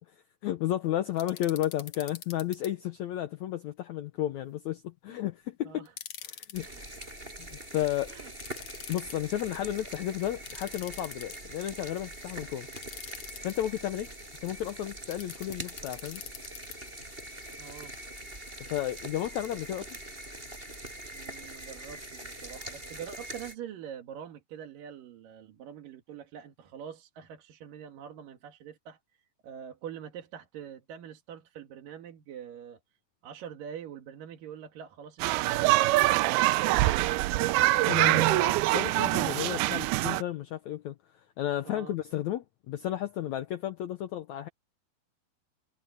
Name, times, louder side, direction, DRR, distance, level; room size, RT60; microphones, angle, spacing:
voice 1, 0.4-5.9 6.2-6.7 7.4-8.2 8.9-12.7 13.4-14.1 14.4-16.2 18.7-19.9 37.8-41.0 41.4-44.5, left 12 dB, 85° left, 1.6 m, -33 dB
sound 1, 1.2-2.7 5.9-6.7 8.4-9.2 10.5-11.6 12.8-13.5 15.1-16.8, left 9 dB, 60° left, 2.0 m, -44 dB
sound 2, 6.5-23.6, right 1 dB, 15° right, 7.2 m, -43 dB
voice 2, 17.6-17.9 21.1-29.0 29.4-32.8 33.2-36.9 41.7-42.0, right 8 dB, 65° right, 3.3 m, -44 dB
sound 3, 35.2-40.2, right 19 dB, 85° right, 2.5 m, -24 dB
omnidirectional pair, 4.4 m